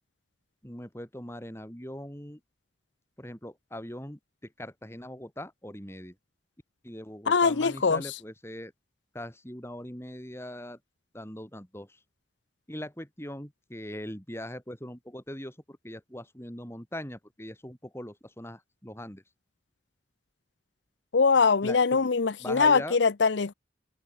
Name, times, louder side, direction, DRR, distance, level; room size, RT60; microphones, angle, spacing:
voice 1, 0.6-2.4 3.2-6.2 6.8-8.7 9.1-10.8 11.1-12.0 12.7-19.2 21.6-22.0 22.4-23.0, left 1 dB, 15° left, 5.2 m, -41 dB
voice 2, 7.3-8.0 21.1-23.5, left 5 dB, 70° left, 0.7 m, -22 dB
open air
head